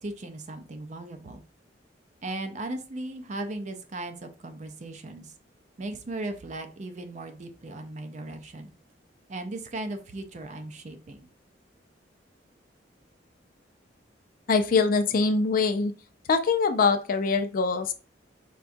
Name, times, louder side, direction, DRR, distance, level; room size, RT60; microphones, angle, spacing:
voice 1, 0.0-1.4 2.2-5.3 5.8-8.7 9.3-11.3, right 2 dB, 40° right, 6 dB, 0.5 m, -37 dB
voice 2, 14.5-15.9 16.3-17.9, left 4 dB, 50° left, 8 dB, 0.4 m, -23 dB
4.6 x 2.3 x 2.6 m, 0.36 s
head